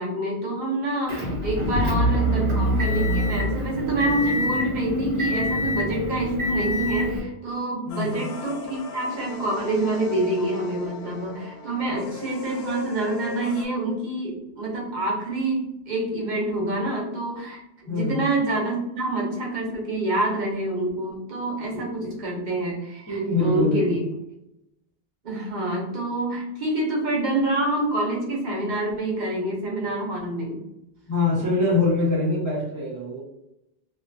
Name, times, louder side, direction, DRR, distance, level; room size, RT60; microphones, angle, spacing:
voice 1, 0.0-24.0 25.2-30.6, right 2 dB, 50° right, -2 dB, 0.9 m, -27 dB
Motor vehicle (road) / Engine, 1.1-7.2, equal, 75° right, 1.1 m, -25 dB
sound 1, 7.9-13.7, left 3 dB, 70° left, 0.8 m, -38 dB
voice 2, 7.9-8.2 17.8-18.3 21.7-22.1 23.1-24.0 31.1-33.2, left 3 dB, 20° left, -8 dB, 0.8 m, -24 dB
2.5 x 2.3 x 2.5 m, 0.86 s
omnidirectional pair, 1.1 m